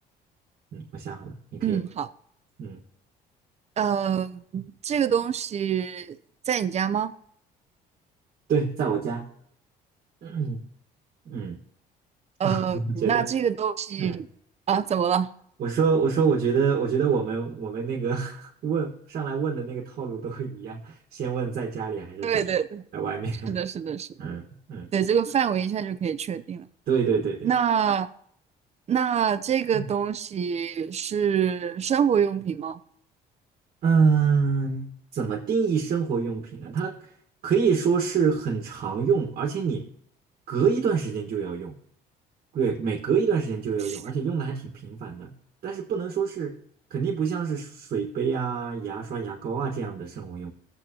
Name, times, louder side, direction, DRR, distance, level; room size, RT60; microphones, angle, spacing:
voice 1, 0.7-1.8 2.6-2.8 8.5-9.2 10.2-10.6 11.2-11.6 12.4-13.3 14.0-14.2 15.6-22.3 22.9-23.6 24.2-24.9 26.9-27.5 29.7-29.9 33.8-37.0 37.4-39.8 40.5-41.7 42.5-45.3 45.6-46.6 46.9-50.5, right 6 dB, 55° right, 1.6 m, -26 dB
voice 2, 1.6-2.1 3.8-6.2 6.5-7.1 12.4-14.3 14.7-15.3 22.2-22.8 23.5-24.1 24.9-26.7 27.4-28.1 28.9-32.8 43.9-44.0, right 8 dB, 40° right, 0.7 m, -25 dB
17.5 x 7.9 x 2.9 m
cardioid pair, 110°, 17 cm